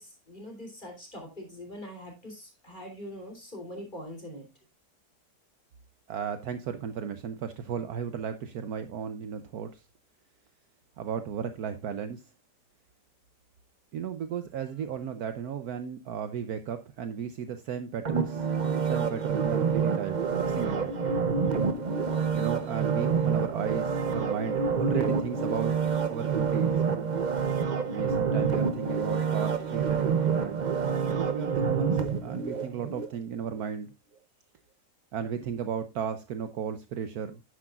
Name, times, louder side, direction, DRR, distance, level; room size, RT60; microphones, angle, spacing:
voice 1, 0.0-4.5, equal, 30° left, 3.6 m, -43 dB
voice 2, 6.1-9.8 11.0-12.3 13.9-21.0 22.3-25.7 26.1-27.1 27.9-30.6 31.1-33.9 35.1-37.4, right 7 dB, 70° right, 1.2 m, -35 dB
sound 1, 18.0-33.1 33.5-33.6, right 6 dB, 40° right, 0.6 m, -28 dB
11.0 x 9.8 x 2.4 m
omnidirectional pair, 1.8 m